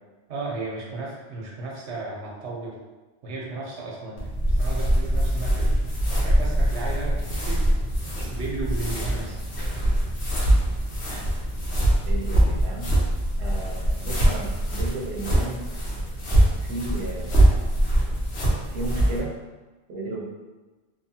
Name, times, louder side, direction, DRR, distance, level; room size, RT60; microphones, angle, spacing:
voice 1, 0.3-2.8 3.2-4.2 4.5-5.8 6.1-7.7 8.3-9.3, right 3 dB, 90° right, -3 dB, 1.0 m, -34 dB
sound 1, 4.2-19.2, right 1 dB, 75° left, 1.0 m, -23 dB
voice 2, 12.1-12.9 13.4-15.6 16.6-17.4 18.7-19.3 19.9-20.3, right 2 dB, 70° right, -2 dB, 0.8 m, -34 dB
2.9 x 2.3 x 2.7 m, 1.2 s
omnidirectional pair, 1.1 m